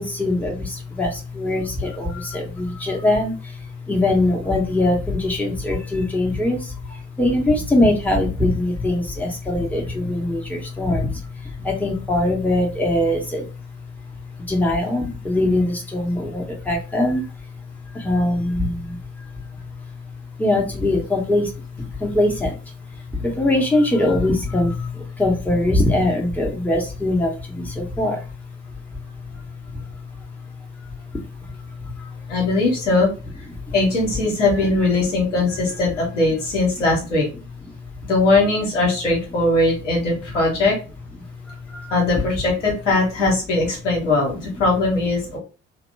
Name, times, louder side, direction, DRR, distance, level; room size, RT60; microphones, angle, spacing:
voice 1, 0.0-13.5 14.5-17.2 17.9-19.2 20.4-22.6 23.2-28.3 28.9-29.0 29.3-29.4 29.7-29.8 31.1-31.2 31.5-32.3 33.6-33.7 41.5-41.9, left 1 dB, 5° left, 0 dB, 1.0 m, -22 dB
voice 2, 32.3-33.1 33.7-37.3 38.0-40.8 41.9-45.4, left 2 dB, 80° left, -2 dB, 1.1 m, -20 dB
2.9 x 2.2 x 3.3 m, 0.32 s
figure-of-eight pair, 50°, 37 cm